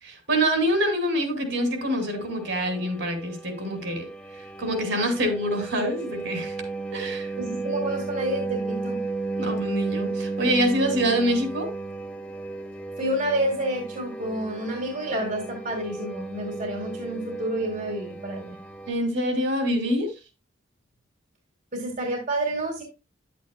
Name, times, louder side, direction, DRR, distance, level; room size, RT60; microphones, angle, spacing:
voice 1, 0.0-4.0 4.6-6.5 6.9-7.3 9.4-11.7 18.9-20.1, equal, 65° right, 2.8 m, -25 dB
sound 1, 1.6-18.9, right 3 dB, 5° left, 0.8 m, -34 dB
voice 2, 7.4-9.0 13.0-18.6 21.7-22.8, right 1 dB, 40° right, 2.0 m, -29 dB
10.5 x 8.5 x 2.2 m
head